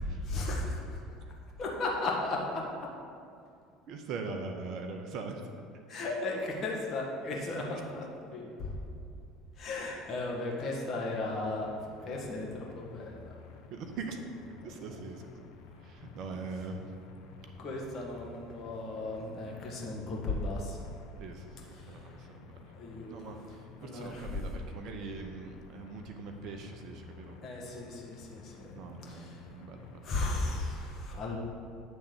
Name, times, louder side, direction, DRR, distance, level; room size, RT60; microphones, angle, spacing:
voice 1, 0.2-1.0 1.6-2.9 5.9-8.8 9.5-11.7 12.0-13.3 14.6-15.0 17.6-20.9 21.7-22.1 22.7-23.4 23.8-24.5 27.4-29.5 30.0-31.4, left 2 dB, 40° left, -2 dB, 1.5 m, -36 dB
voice 2, 3.9-5.4 5.9-6.1 13.7-14.2 14.6-15.2 15.8-16.9 21.2-21.5 21.9-22.6 23.1-27.4 28.7-30.1, right 4 dB, 50° right, 4 dB, 0.7 m, -42 dB
sound 1, 11.4-30.1, left 5 dB, 60° left, 0.6 m, -52 dB
8.9 x 3.5 x 6.6 m, 2.4 s
figure-of-eight pair, 65°, 0 cm